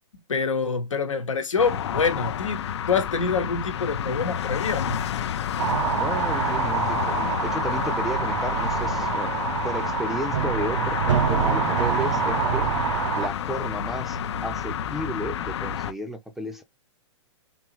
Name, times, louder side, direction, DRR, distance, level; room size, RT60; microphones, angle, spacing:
voice 1, 0.3-2.6 2.9-5.0, left 5 dB, 80° left, 1.1 m, -26 dB
sound 1, 1.6-15.9, left 9 dB, 60° left, 0.5 m, -29 dB
sound 2, 5.6-13.3, right 8 dB, 75° right, 0.4 m, -26 dB
voice 2, 5.9-9.3 9.6-12.7 13.1-16.6, equal, ahead, 0.5 m, -33 dB
3.4 x 2.9 x 3.0 m
hypercardioid pair, 120°, 16 cm